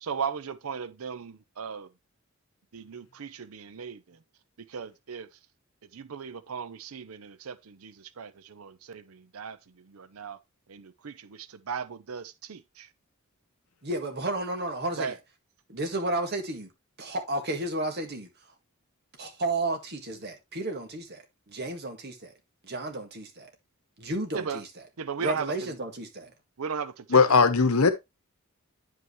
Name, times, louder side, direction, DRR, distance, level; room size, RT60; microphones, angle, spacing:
voice 1, 0.0-1.9 2.7-4.2 4.7-5.3 5.9-10.4 10.7-12.9 15.0-15.2 24.3-24.6 25.0-25.8 26.6-27.4, right 6 dB, 75° right, 0.6 m, -37 dB
voice 2, 13.8-15.2 15.7-16.7 17.0-18.3 19.2-22.3 22.6-23.5 24.0-24.7 25.2-26.3, right 2 dB, 50° right, 1.8 m, -32 dB
voice 3, 27.1-27.9, left 4 dB, 75° left, 1.0 m, -19 dB
9.2 x 5.4 x 3.1 m
head